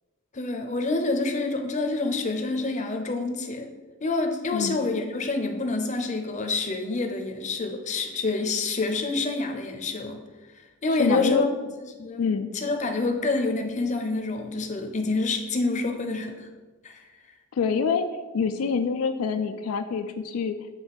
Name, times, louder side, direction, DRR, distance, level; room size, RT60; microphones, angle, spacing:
voice 1, 0.3-3.7 4.0-10.2 10.8-11.5 12.0-12.3 12.5-16.5 16.8-17.0, left 3 dB, 35° left, 5 dB, 0.6 m, -27 dB
voice 2, 11.0-11.4 12.2-12.5 17.5-18.1 18.3-20.6, left 5 dB, 80° left, 7 dB, 0.4 m, -25 dB
7.6 x 3.2 x 4.7 m, 1.3 s
head